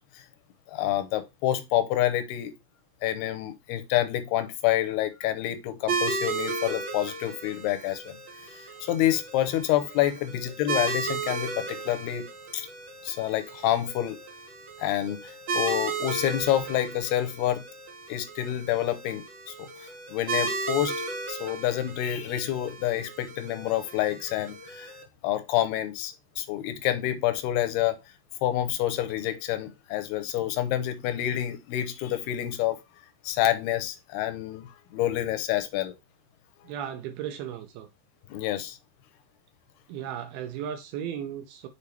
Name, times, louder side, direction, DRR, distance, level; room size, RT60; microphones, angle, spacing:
voice 1, 0.7-2.5 3.0-8.2 8.5-12.3 12.5-12.7 13.0-14.2 14.8-17.6 18.1-20.9 21.3-24.9 25.2-28.0 28.4-32.8 33.2-35.9 38.3-38.8, left 13 dB, 80° left, 2.7 m, -28 dB
sound 1, 5.9-25.0, right 4 dB, 60° right, 1.2 m, -35 dB
voice 2, 36.6-37.9 39.9-41.7, right 9 dB, 80° right, 2.4 m, -35 dB
7.0 x 4.6 x 3.4 m
omnidirectional pair, 4.8 m